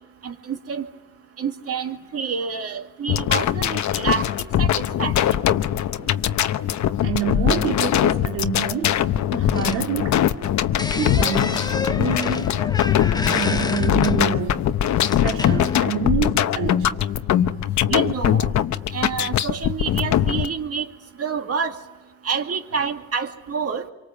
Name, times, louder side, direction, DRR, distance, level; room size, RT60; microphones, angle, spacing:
voice 1, 0.2-0.9 1.4-4.2 4.6-5.1 17.9-18.5 18.9-20.9 21.2-21.8 22.2-23.9, right 6 dB, 50° right, 5 dB, 2.4 m, -27 dB
sound 1, 3.1-20.5, left 11 dB, 70° left, 1.0 m, -21 dB
voice 2, 7.0-10.3 10.9-11.7 12.0-12.5 13.3-14.6 15.2-17.0, right 7 dB, 85° right, 1 dB, 2.5 m, -27 dB
sound 2, 9.5-10.5 10.8-14.6 15.0-15.8, left 2 dB, 15° left, 0.9 m, -31 dB
27.0 x 24.0 x 7.4 m, 1.1 s
cardioid pair, 90°, 30 cm